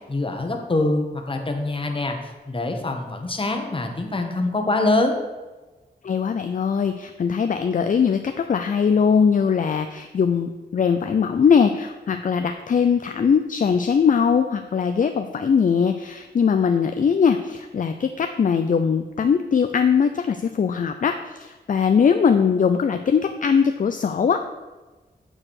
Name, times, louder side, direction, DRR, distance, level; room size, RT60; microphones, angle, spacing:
voice 1, 0.1-2.2 2.5-5.2, left 2 dB, 30° left, 4 dB, 1.2 m, -24 dB
voice 2, 6.0-24.4, left 6 dB, 50° left, 7 dB, 0.5 m, -21 dB
8.7 x 4.8 x 6.4 m, 1.2 s
wide cardioid pair, 120°, 17 cm